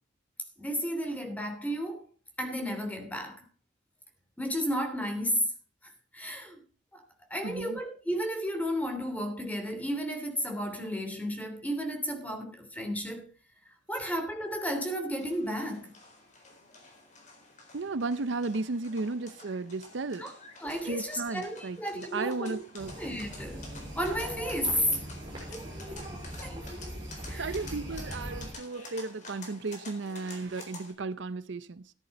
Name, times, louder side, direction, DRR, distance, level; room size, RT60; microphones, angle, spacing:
voice 1, 0.6-2.0 2.4-3.4 4.4-5.5 6.1-6.6 6.9-7.0 7.3-13.3 13.7-15.9 20.2-20.3 20.6-22.6 23.0-24.9 25.5-25.7 26.4-26.6 27.2-27.6, equal, 10° left, 3.0 m, -33 dB
voice 2, 7.4-7.8 17.7-20.3 20.8-22.9 24.7-25.0 27.3-31.9, right 3 dB, 70° right, 0.6 m, -34 dB
sound 1, 15.2-30.9, left 3 dB, 40° left, 4.1 m, -50 dB
sound 2, 22.8-28.5, equal, 25° right, 6.4 m, -40 dB
14.5 x 10.5 x 4.2 m
head